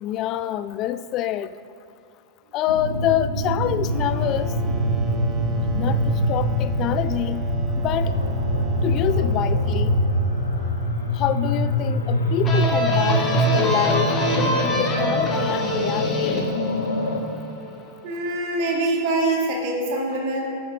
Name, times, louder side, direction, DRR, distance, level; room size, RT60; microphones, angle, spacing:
voice 1, 0.0-1.5 2.5-4.6 5.7-7.4 7.8-8.2 8.8-10.0 11.1-16.6, left 12 dB, 35° left, 13 dB, 0.3 m, -26 dB
sound 1, 2.7-17.2, equal, 75° left, 1.1 m, -24 dB
sound 2, 3.8-12.3, right 3 dB, 20° right, 1.0 m, -38 dB
sound 3, 12.4-17.9, equal, 20° left, 1.8 m, -26 dB
voice 2, 18.0-20.4, right 2 dB, 45° right, -1 dB, 2.2 m, -24 dB
11.5 x 8.7 x 3.7 m, 2.5 s
figure-of-eight pair, 90°, 0 cm